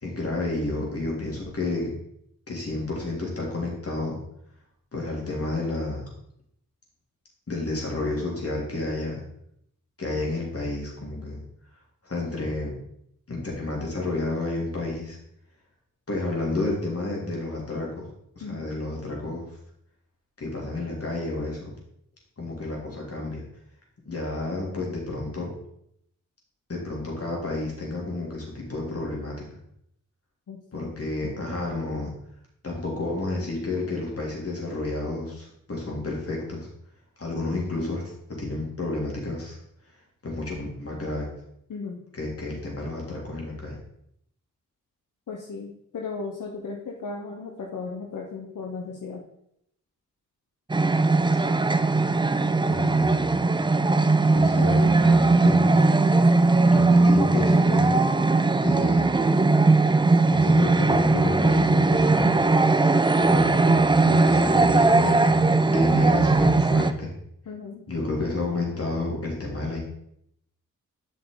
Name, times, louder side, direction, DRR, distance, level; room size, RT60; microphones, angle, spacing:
voice 1, 0.0-1.9 2.5-4.2 4.9-6.0 7.5-9.2 10.0-11.4 12.0-12.7 13.3-15.2 16.1-18.1 18.3-19.5 20.4-21.7 22.4-23.4 24.1-25.5 26.7-29.4 30.7-32.1 32.6-36.7 37.2-38.0 38.3-39.6 40.2-41.3 42.1-43.8 52.7-53.4 54.3-55.7 56.7-58.0 58.6-59.2 60.2-62.4 63.1-67.1 67.9-69.8, left 2 dB, 45° left, -2 dB, 3.1 m, -30 dB
voice 2, 30.5-30.9 41.7-42.0 45.3-49.2 67.5-67.9, left 4 dB, 70° left, 0 dB, 1.1 m, -36 dB
sound 1, 50.7-66.9, right 3 dB, 15° right, 0.5 m, -19 dB
7.9 x 5.7 x 3.9 m, 0.74 s
cardioid pair, 55°, 33 cm